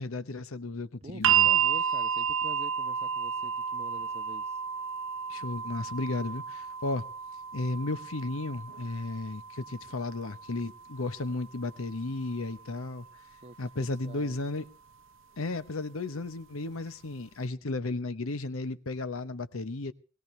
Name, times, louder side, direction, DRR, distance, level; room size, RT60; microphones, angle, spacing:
voice 1, 0.0-1.5 5.3-7.1 7.5-13.1 13.6-14.6 15.4-19.9, left 2 dB, 80° left, 0.9 m, -34 dB
voice 2, 1.0-4.6 13.4-13.6 14.0-14.4, right 1 dB, 30° right, 0.9 m, -46 dB
sound 1, 1.2-13.3 14.4-14.5, right 8 dB, 65° right, 0.6 m, -32 dB
20.5 x 17.5 x 3.3 m
head